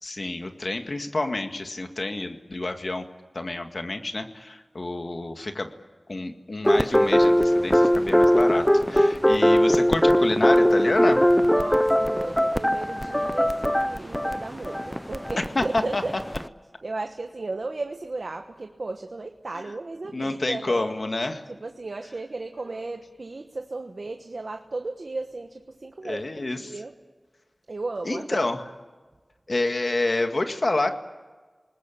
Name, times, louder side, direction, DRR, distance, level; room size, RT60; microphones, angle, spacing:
voice 1, 0.0-3.1 3.3-5.7 6.1-11.2 15.6-16.0 20.1-21.4 26.0-26.7 28.1-28.6 29.5-30.9, left 2 dB, 65° left, 6 dB, 1.9 m, -28 dB
sound 1, 6.6-16.5, equal, 10° left, 0.7 m, -21 dB
voice 2, 11.4-16.1 16.8-20.9 21.5-26.9 27.7-28.5, right 3 dB, 75° right, 5 dB, 1.2 m, -35 dB
28.0 x 20.0 x 8.7 m, 1.4 s
wide cardioid pair, 50°, 0 cm